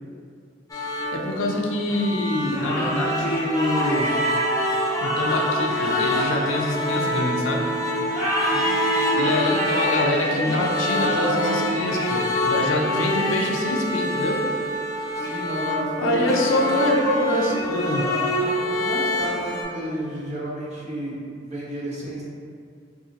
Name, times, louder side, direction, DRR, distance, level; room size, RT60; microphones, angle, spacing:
voice 1, 0.7-4.1 5.0-7.7 9.2-14.4 16.0-18.1, left 1 dB, 85° left, 0 dB, 0.4 m, -25 dB
sound 1, 0.7-19.6, equal, 20° left, 0.4 m, -26 dB
sound 2, 2.5-7.3 8.1-12.5, equal, 5° right, 0.8 m, -29 dB
voice 2, 8.4-8.8 15.1-16.8 18.0-22.2, equal, 35° right, -6 dB, 0.7 m, -32 dB
2.5 x 2.4 x 3.9 m, 2.4 s
head